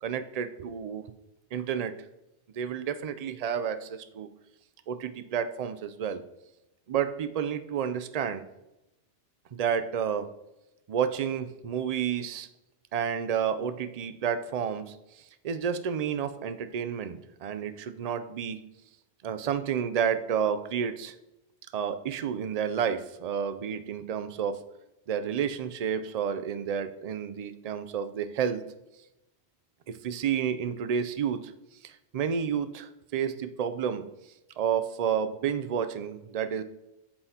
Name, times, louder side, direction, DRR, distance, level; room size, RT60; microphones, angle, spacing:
voice 1, 0.0-1.0 1.5-1.9 2.6-4.3 4.9-6.2 6.9-8.4 9.5-10.3 10.9-12.5 12.9-14.9 15.4-18.6 19.2-21.1 21.7-24.6 25.1-28.6 29.9-31.5 31.8-34.0 34.6-36.6, right 8 dB, 80° right, 11 dB, 0.3 m, -30 dB
8.5 x 7.7 x 2.8 m, 0.94 s
omnidirectional pair, 1.2 m